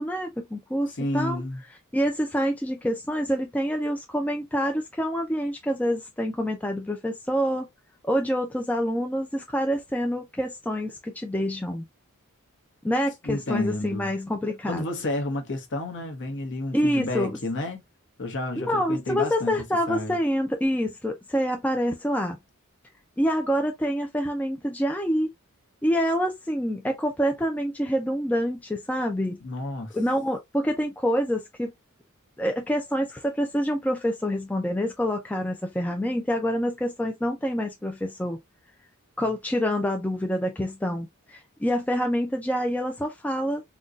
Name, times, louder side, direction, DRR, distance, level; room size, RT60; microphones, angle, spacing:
voice 1, 0.0-1.4 1.9-7.7 8.0-11.9 12.8-14.8 16.7-17.4 18.6-22.4 23.2-25.3 25.8-29.4 29.9-31.7 32.4-38.4 39.2-43.6, equal, 5° left, 0.4 m, -26 dB
voice 2, 1.0-1.6 13.2-14.1 14.6-17.8 18.2-20.2 29.4-30.0, left 2 dB, 55° left, 0.9 m, -31 dB
3.9 x 2.2 x 2.3 m
head